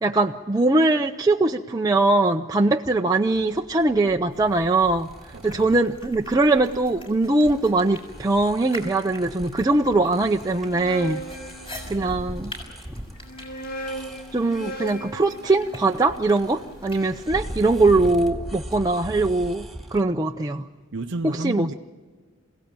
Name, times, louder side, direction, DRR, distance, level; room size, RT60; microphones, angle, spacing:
voice 1, 0.0-5.1 5.4-11.2 11.9-12.5 14.3-20.7 21.2-21.7, right 2 dB, 15° right, 0.6 m, -21 dB
sound 1, 3.2-20.0, equal, ahead, 2.2 m, -40 dB
sound 2, 4.3-18.3, left 1 dB, 25° left, 6.5 m, -45 dB
voice 2, 5.3-5.7 20.9-21.7, right 2 dB, 60° right, 0.7 m, -31 dB
sound 3, 10.6-12.4 13.2-17.3, right 1 dB, 45° left, 2.1 m, -38 dB
27.5 x 17.0 x 8.8 m
head